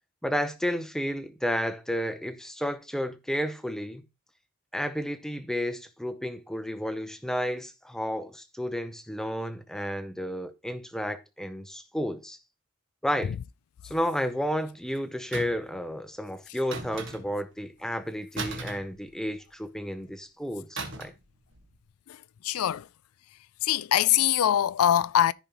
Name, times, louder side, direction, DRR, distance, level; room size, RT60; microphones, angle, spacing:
voice 1, 0.2-4.0 4.7-12.4 13.0-13.3 13.8-21.1, equal, ahead, 0.7 m, -32 dB
sound 1, 15.3-15.8 16.7-17.5 18.4-19.5 20.8-21.3 21.5-21.8, right 3 dB, 55° right, 1.6 m, -37 dB
voice 2, 22.1-22.9 23.6-25.3, left 11 dB, 80° left, 0.3 m, -23 dB
14.0 x 5.3 x 3.0 m
head